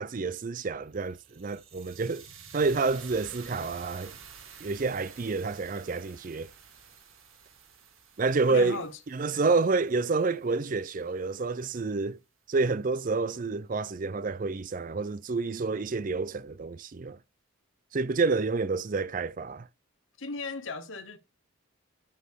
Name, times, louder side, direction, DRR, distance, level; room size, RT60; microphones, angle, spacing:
voice 1, 0.0-2.2 2.5-4.1 4.6-6.5 8.2-8.8 9.1-12.2 12.5-17.2 17.9-19.7, right 4 dB, 40° right, 0.4 m, -29 dB
sound 1, 0.9-11.0, right 7 dB, 75° right, 1.9 m, -51 dB
voice 2, 8.5-9.0 9.3-9.5 20.2-21.2, left 3 dB, 65° left, 1.1 m, -37 dB
9.2 x 6.5 x 3.5 m
head